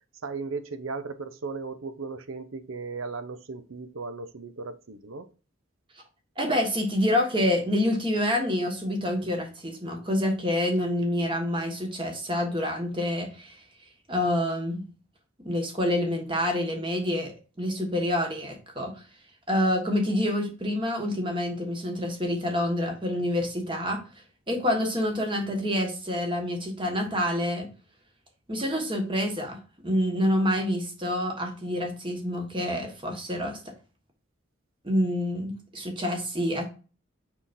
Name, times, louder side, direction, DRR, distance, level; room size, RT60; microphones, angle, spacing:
voice 1, 0.2-5.3, right 4 dB, 80° right, 0.7 m, -36 dB
voice 2, 6.4-13.6 14.1-14.8 15.4-18.9 19.5-24.0 24.5-27.7 28.5-33.6 34.8-36.7, left 1 dB, 25° right, 1.5 m, -27 dB
6.2 x 5.7 x 2.6 m
head